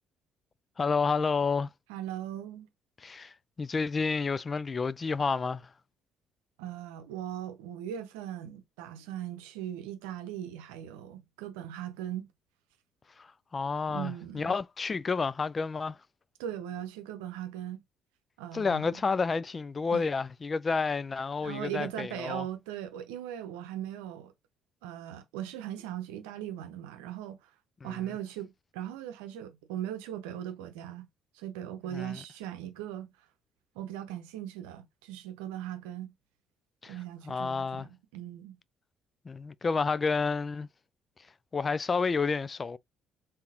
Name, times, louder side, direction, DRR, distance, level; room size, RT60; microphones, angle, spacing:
voice 1, 0.8-1.7 3.0-5.7 13.2-16.0 18.5-22.5 27.8-27.9 31.9-32.2 36.8-37.0 37.2-37.9 39.3-40.7 41.5-42.8, left 4 dB, 35° left, 0.3 m, -30 dB
voice 2, 1.9-2.7 6.6-12.3 13.9-14.6 16.4-17.8 18.4-19.0 19.9-20.0 21.4-24.3 24.8-27.4 27.8-31.1 31.3-33.1 33.8-36.1 36.9-38.6, right 11 dB, 80° right, 0.7 m, -39 dB
3.8 x 2.8 x 2.8 m
hypercardioid pair, 55°, 0 cm